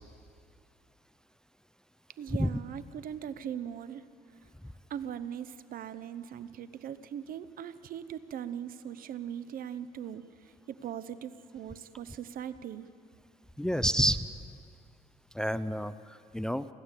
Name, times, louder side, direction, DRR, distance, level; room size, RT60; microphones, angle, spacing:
voice 1, 2.2-4.0 4.9-12.9, right 9 dB, 55° right, 14 dB, 0.9 m, -40 dB
voice 2, 13.6-14.3 15.3-16.7, equal, 5° left, 13 dB, 0.5 m, -29 dB
30.0 x 11.5 x 8.3 m, 2.3 s
cardioid pair, 110°, 17 cm